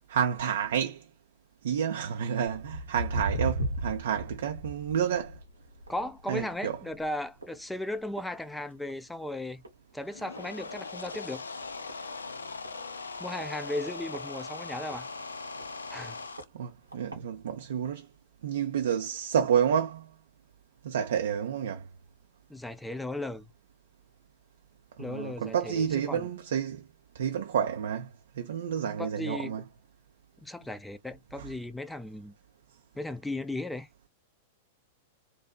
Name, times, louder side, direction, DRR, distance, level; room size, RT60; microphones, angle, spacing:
voice 1, 0.1-1.1 1.6-5.4 6.3-6.8 16.5-18.1 18.4-20.1 20.8-21.9 25.0-26.9 27.1-28.1 28.4-29.6 31.4-31.5, right 8 dB, 65° right, 0.4 m, -29 dB
Walk footsteps, 2.5-9.1 9.4-9.8 10.4-10.5 11.1-11.2 11.6-11.7 11.9-12.0 12.6-12.7 13.4-15.0 15.6-15.7 16.4-16.5 16.9-17.2 17.8-17.9, right 1 dB, 90° right, 0.9 m, -36 dB
voice 2, 5.9-9.6 9.9-11.4 13.2-15.1 15.9-16.2 22.5-23.5 25.0-26.3 29.0-29.6 30.4-32.3 33.0-33.9, left 1 dB, 5° left, 0.3 m, -36 dB
sound 1, 10.0-16.4, left 3 dB, 80° left, 0.3 m, -40 dB
2.6 x 2.2 x 2.3 m
figure-of-eight pair, 95°, 0 cm